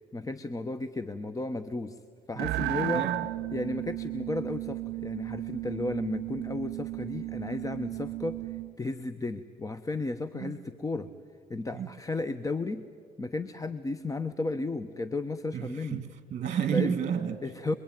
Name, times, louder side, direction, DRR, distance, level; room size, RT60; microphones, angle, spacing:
voice 1, 0.0-2.0 2.3-3.1 3.5-11.1 11.5-12.8 13.2-16.1 16.7-17.0 17.4-17.7, left 2 dB, 20° left, 0.9 m, -34 dB
voice 2, 2.4-3.3 10.4-10.5 11.0-11.1 11.7-11.9 15.5-17.4, right 8 dB, 45° right, 2.0 m, -32 dB
sound 1, 2.4-8.7, right 17 dB, 80° right, 0.6 m, -34 dB
26.0 x 22.5 x 9.2 m
cardioid pair, 110°, 17 cm